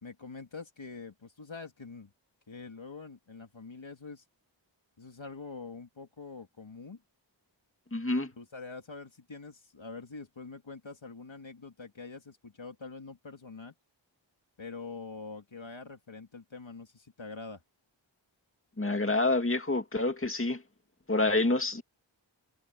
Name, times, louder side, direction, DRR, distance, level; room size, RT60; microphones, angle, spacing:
voice 1, 0.0-2.1 2.5-4.2 5.0-7.0 8.4-13.7 14.6-17.6, left 4 dB, 75° left, 2.8 m, -45 dB
voice 2, 7.9-8.3 18.8-20.6 21.1-21.8, left 2 dB, 25° left, 2.2 m, -27 dB
wide cardioid pair, 40°, 46 cm